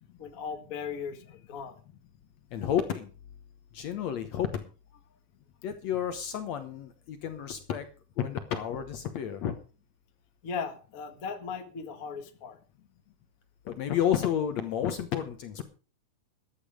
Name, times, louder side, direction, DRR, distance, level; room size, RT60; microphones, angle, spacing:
voice 1, 0.2-1.8 10.4-12.6, left 6 dB, 35° left, 6 dB, 1.4 m, -37 dB
voice 2, 2.5-3.1 3.7-4.6 5.6-7.8 8.2-9.6 13.7-15.6, left 9 dB, 65° left, 9 dB, 2.0 m, -31 dB
14.0 x 10.5 x 5.0 m, 0.36 s
omnidirectional pair, 3.9 m